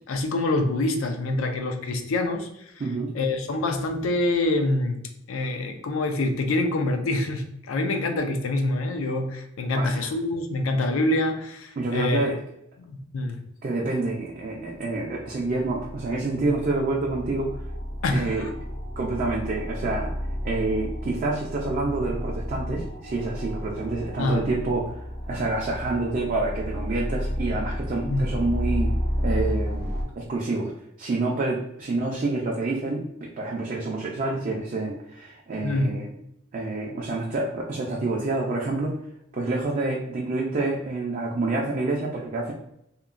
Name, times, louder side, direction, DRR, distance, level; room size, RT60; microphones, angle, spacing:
voice 1, 0.1-2.7 3.1-5.0 5.3-12.2 12.8-13.4 18.0-18.5 24.2-24.4 28.0-28.3 35.6-36.0, left 2 dB, 85° left, 5 dB, 0.4 m, -26 dB
voice 2, 2.8-3.1 9.7-10.1 11.8-12.3 13.6-17.5 18.1-18.5 19.0-20.1 20.4-25.0 25.3-30.7 31.0-36.1 36.5-39.0 39.3-42.5, right 2 dB, 40° right, -2 dB, 0.4 m, -28 dB
sound 1, 14.6-14.7 15.0-30.0, equal, 35° left, 0.6 m, -31 dB
2.9 x 2.2 x 2.4 m, 0.77 s
head